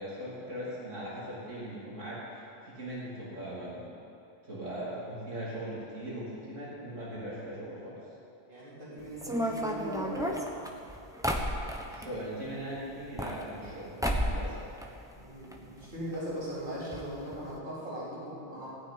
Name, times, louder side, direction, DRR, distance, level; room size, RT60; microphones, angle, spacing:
voice 1, 0.0-3.9 4.4-8.0 11.9-14.6, right 1 dB, 85° right, -8 dB, 3.7 m, -39 dB
voice 2, 8.5-10.4 15.2-18.7, equal, 45° right, -9 dB, 4.2 m, -39 dB
sound 1, 9.2-12.1 12.9-13.7 14.0-14.5 14.8-15.6 15.8-15.9 16.1-16.2 16.9-17.0 17.3-17.5, equal, 5° right, 1.0 m, -32 dB
18.0 x 6.4 x 9.6 m, 2.6 s
omnidirectional pair, 1.2 m